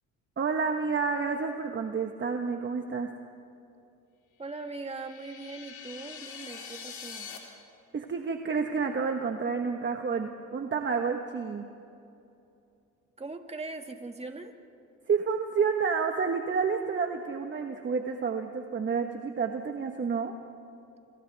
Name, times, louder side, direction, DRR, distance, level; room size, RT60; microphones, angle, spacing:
voice 1, 0.4-3.1 7.9-11.7 15.1-20.3, right 5 dB, 40° right, 4 dB, 1.3 m, -29 dB
voice 2, 4.4-7.3 13.2-14.5, right 3 dB, 20° right, 4 dB, 2.0 m, -40 dB
sound 1, 4.6-7.4, left 7 dB, 75° left, 3.9 m, -44 dB
29.5 x 25.5 x 3.5 m, 2.6 s
cardioid pair, 90°, 30 cm